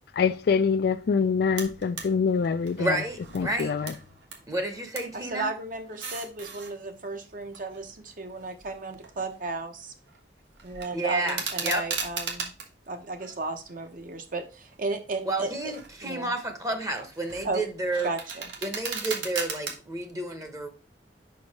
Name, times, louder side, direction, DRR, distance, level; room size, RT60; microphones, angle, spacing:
voice 1, 0.1-3.0 3.3-3.9, left 5 dB, 60° left, 0.3 m, -25 dB
sound 1, 1.6-2.1 2.4-4.4 4.7-5.2 5.8-6.7 7.4-9.5 9.8-10.2 10.5-12.7 13.2-14.1 14.7-14.9 15.5-16.0 16.4-19.7, right 5 dB, 80° right, 1.4 m, -37 dB
voice 2, 2.8-3.7 4.5-5.5 10.9-11.8 15.3-18.1 18.6-20.7, right 2 dB, 20° right, 0.9 m, -30 dB
voice 3, 5.1-9.9 10.6-12.5 12.9-15.5 16.0-16.3 17.4-17.6 18.0-18.5, right 3 dB, 50° right, 1.0 m, -34 dB
5.2 x 4.7 x 4.7 m
head